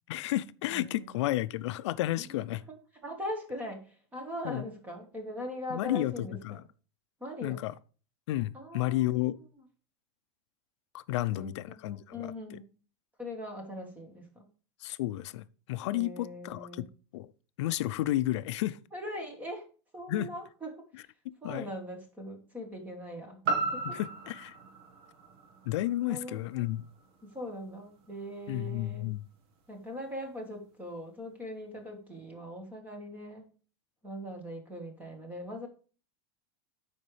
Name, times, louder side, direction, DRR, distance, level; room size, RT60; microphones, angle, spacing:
voice 1, 0.1-2.6 4.4-4.7 5.7-6.6 7.4-7.7 8.3-9.4 10.9-12.6 14.8-16.8 17.1-17.3 17.6-18.8 20.1-20.3 21.4-21.7 23.8-24.6 25.6-26.9 28.5-29.2, left 15 dB, 90° left, 0.5 m, -32 dB
voice 2, 0.7-1.1 3.0-6.6 7.2-7.6 8.5-9.1 11.1-11.5 11.9-12.7 13.2-14.4 15.9-16.9 18.9-19.7 19.9-20.8 21.4-23.4 23.7-23.8 26.1-26.4 27.3-29.1 29.7-33.4 34.0-35.7, equal, 10° right, 1.4 m, -41 dB
sound 1, 23.4-27.5 28.0-28.1, right 3 dB, 60° right, 1.4 m, -36 dB
13.0 x 5.1 x 3.2 m
supercardioid pair, 170°, 14 cm